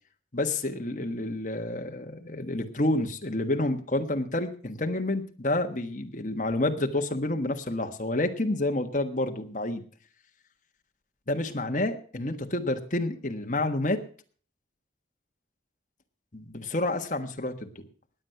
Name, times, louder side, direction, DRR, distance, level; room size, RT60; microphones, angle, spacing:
voice 1, 0.3-9.8 11.3-14.0 16.3-17.8, left 2 dB, 45° left, 5 dB, 1.4 m, -29 dB
19.5 x 8.1 x 5.8 m, 0.43 s
head